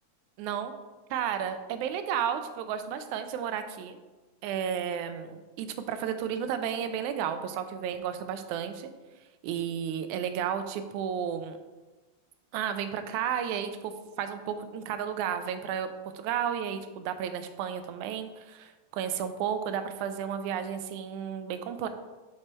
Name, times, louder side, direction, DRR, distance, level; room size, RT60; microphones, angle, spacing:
voice 1, 0.4-0.7 1.1-4.0 4.4-8.9 9.4-11.6 12.5-21.9, right 8 dB, 85° right, 8 dB, 2.0 m, -32 dB
6.2 x 4.7 x 4.3 m, 1.2 s
omnidirectional pair, 3.4 m